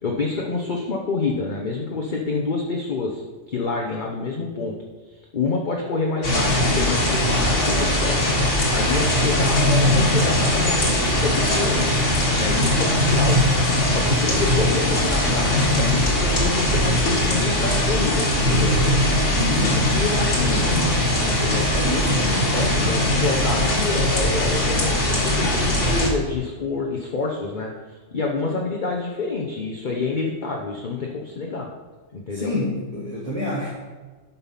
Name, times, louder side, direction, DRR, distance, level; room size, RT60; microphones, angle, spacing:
voice 1, 0.0-4.7 5.3-8.2 8.7-12.0 12.4-13.4 13.9-18.9 19.4-20.7 21.2-21.7 22.5-31.7 32.1-32.5, left 3 dB, 45° left, 0 dB, 1.0 m, -27 dB
sound 1, 6.2-26.1, left 1 dB, 80° left, 2.3 m, -20 dB
voice 2, 21.7-22.4 32.3-33.7, left 1 dB, 30° right, -6 dB, 1.6 m, -27 dB
9.6 x 5.8 x 5.7 m, 1.3 s
omnidirectional pair, 1.3 m